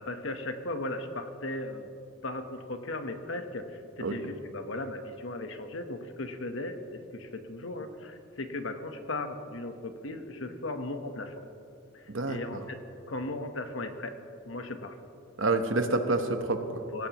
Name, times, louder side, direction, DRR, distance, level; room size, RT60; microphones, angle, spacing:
voice 1, 0.0-1.9 2.2-11.4 11.9-12.8 13.1-14.2 14.4-15.0 16.9-17.1, left 2 dB, 80° left, 7 dB, 1.1 m, -37 dB
voice 2, 12.1-12.6 15.4-16.8, right 2 dB, 80° right, 7 dB, 1.1 m, -28 dB
18.5 x 16.5 x 3.0 m, 2.6 s
head